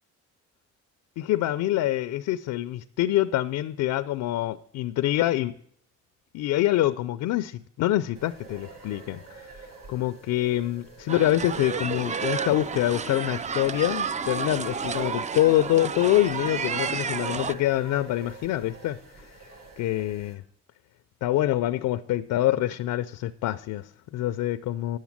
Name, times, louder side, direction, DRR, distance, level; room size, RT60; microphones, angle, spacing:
voice 1, 1.2-5.5 6.3-19.3 19.8-20.4 21.2-25.0, left 14 dB, 85° left, 0.5 m, -26 dB
sound 1, 8.1-20.3, right 4 dB, 60° right, 5.1 m, -46 dB
sound 2, 11.1-17.5, right 6 dB, 25° right, 0.4 m, -31 dB
9.8 x 7.3 x 7.3 m
cardioid pair, 90°, 30 cm